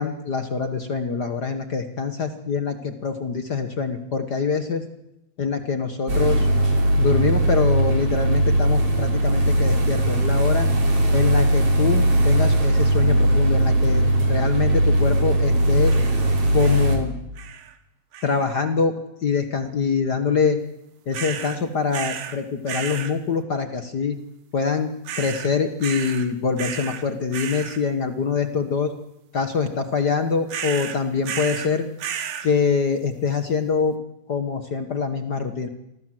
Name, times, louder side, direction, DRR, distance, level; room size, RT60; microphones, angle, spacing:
voice 1, 0.0-4.8 5.4-6.5 6.9-10.7 11.1-15.9 16.5-17.1 18.2-18.9 19.2-20.6 21.1-24.2 24.5-28.9 29.3-31.9 32.4-33.9 34.3-35.7, left 5 dB, 55° left, 8 dB, 1.1 m, -24 dB
sound 1, 6.1-17.0, right 1 dB, 40° right, 5.0 m, -19 dB
sound 2, 15.8-16.2 16.6-17.0 17.4-17.7 18.1-18.6 21.1-21.6 21.9-22.4 22.7-23.1 25.1-25.5 25.8-26.3 26.6-27.0 27.3-27.8 30.5-31.7 32.0-32.5, right 8 dB, 75° right, 3.4 m, -33 dB
27.5 x 20.5 x 7.8 m, 0.86 s
omnidirectional pair, 4.0 m